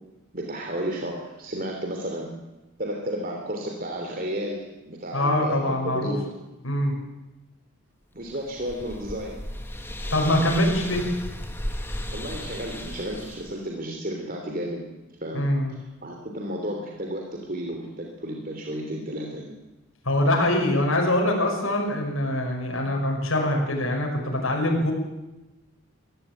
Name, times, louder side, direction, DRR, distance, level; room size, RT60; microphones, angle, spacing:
voice 1, 0.3-2.3 2.8-6.3 8.1-9.5 12.1-14.8 15.2-19.6, equal, 45° right, 1 dB, 3.2 m, -33 dB
voice 2, 5.1-6.1 6.6-6.9 10.1-11.0 15.3-15.7 20.0-24.9, left 1 dB, 80° left, 0 dB, 6.1 m, -23 dB
sound 1, 8.2-13.6, left 1 dB, 10° left, 1.7 m, -35 dB
23.5 x 16.0 x 9.1 m, 1.0 s
head